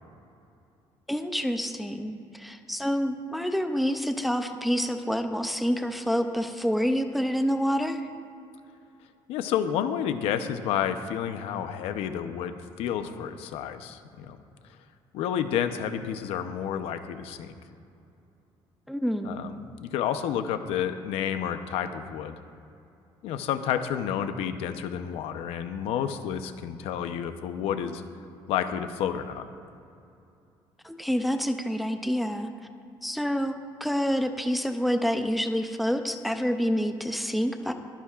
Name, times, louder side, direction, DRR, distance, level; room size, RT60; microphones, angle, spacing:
voice 1, 1.1-8.1 18.9-19.4 30.8-32.5 33.0-37.7, equal, ahead, 6 dB, 0.5 m, -27 dB
voice 2, 9.3-14.4 15.1-17.5 19.2-22.3 23.2-28.0 28.5-29.5, left 9 dB, 90° left, 9 dB, 0.8 m, -30 dB
23.0 x 10.5 x 2.5 m, 2.6 s
cardioid pair, 175°, 10 cm